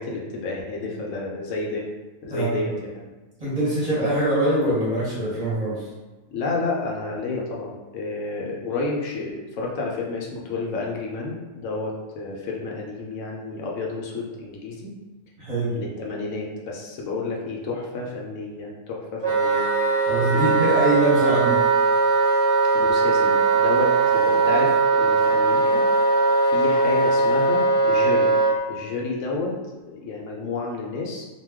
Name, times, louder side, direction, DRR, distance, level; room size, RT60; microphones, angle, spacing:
voice 1, 0.0-1.9 2.3-3.0 6.3-14.9 15.7-19.6 20.2-20.6 22.7-25.8 26.5-28.3 28.7-29.5 29.9-31.2, left 3 dB, 75° left, -2 dB, 0.9 m, -30 dB
voice 2, 2.3-2.6 3.4-5.8 15.4-15.7 20.1-21.6, right 1 dB, 35° right, -9 dB, 0.7 m, -23 dB
Wind instrument woodwind instrument, 19.2-28.6, right 3 dB, 5° left, 0.5 m, -20 dB
2.2 x 2.2 x 3.4 m, 1.2 s
omnidirectional pair, 1.3 m